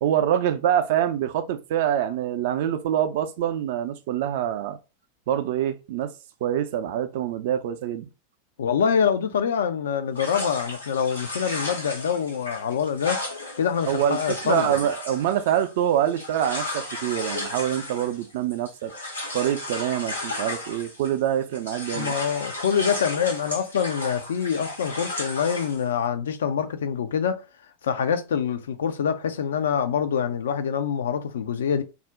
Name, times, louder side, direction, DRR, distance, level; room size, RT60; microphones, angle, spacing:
voice 1, 0.0-4.8 5.3-6.1 6.4-8.1 13.9-14.2 14.4-18.9 19.3-22.1, right 10 dB, 50° right, 0.4 m, -25 dB
voice 2, 8.6-13.2 13.6-14.7 21.9-27.5 27.8-31.8, left 7 dB, 65° left, 0.3 m, -25 dB
sound 1, 10.2-21.3 21.5-25.8, left 2 dB, 80° left, 0.9 m, -34 dB
2.4 x 2.0 x 3.5 m
figure-of-eight pair, 90°, 0 cm